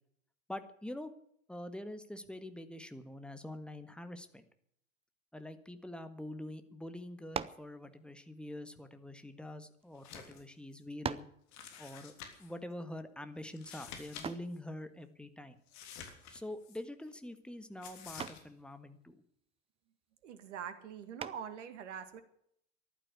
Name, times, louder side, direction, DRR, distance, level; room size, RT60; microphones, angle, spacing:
voice 1, 0.5-1.1 1.5-4.4 5.3-11.3 11.8-12.1 12.4-15.5 16.3-19.2, left 1 dB, 5° left, 9 dB, 1.6 m, -45 dB
sound 1, 7.3-7.7 8.7-9.8 10.5-10.6 11.0-11.4 14.2-14.6 16.5-16.9 17.2-17.6 18.2-18.5 21.2-21.6, right 7 dB, 15° right, 0.6 m, -41 dB
sound 2, 9.9-10.4 10.7-10.8 11.5-12.5 13.5-14.3 14.5-14.6 15.7-16.8 17.8-18.4, left 7 dB, 45° left, 3.4 m, -49 dB
voice 2, 20.2-22.2, right 8 dB, 65° right, 12 dB, 2.0 m, -44 dB
14.5 x 11.5 x 8.1 m, 0.69 s
figure-of-eight pair, 80°, 38 cm